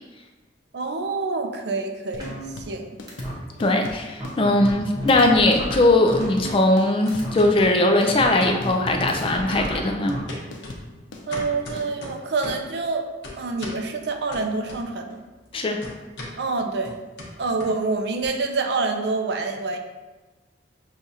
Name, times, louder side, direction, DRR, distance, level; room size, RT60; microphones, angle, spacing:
voice 1, 0.7-2.4 2.7-2.9 11.3-13.1 13.4-15.2 16.4-17.0 17.4-19.8, right 3 dB, 60° right, 4 dB, 0.4 m, -26 dB
sound 1, 2.1-11.9, left 2 dB, 90° left, 0.6 m, -39 dB
sound 2, 2.2-2.8 3.1-3.3 3.8-3.9 4.2-6.8 7.1-7.3 8.2-10.2, equal, 20° right, 0.8 m, -32 dB
sound 3, 2.9-3.9 4.2-5.8 6.1-6.6 7.1-7.6 8.1-8.9 9.2-9.8 10.3-12.7 13.2-13.8 14.3-15.1 15.4-18.3, left 1 dB, 70° left, 0.9 m, -39 dB
voice 2, 3.6-10.2 15.5-15.8, left 2 dB, 30° left, 3 dB, 0.3 m, -20 dB
6.3 x 2.4 x 2.7 m, 1.2 s
head